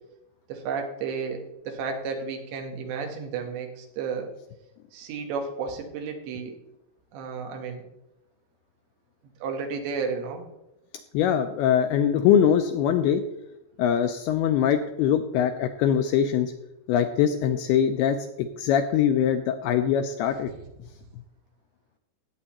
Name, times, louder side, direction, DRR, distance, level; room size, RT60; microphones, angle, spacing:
voice 1, 0.5-4.3 4.9-6.6 7.1-7.8 9.4-10.4, right 5 dB, 85° right, 3 dB, 3.4 m, -32 dB
voice 2, 11.1-13.2 13.8-16.5 16.9-20.5, left 9 dB, 85° left, 7 dB, 2.3 m, -22 dB
17.5 x 8.0 x 3.0 m, 0.92 s
omnidirectional pair, 5.0 m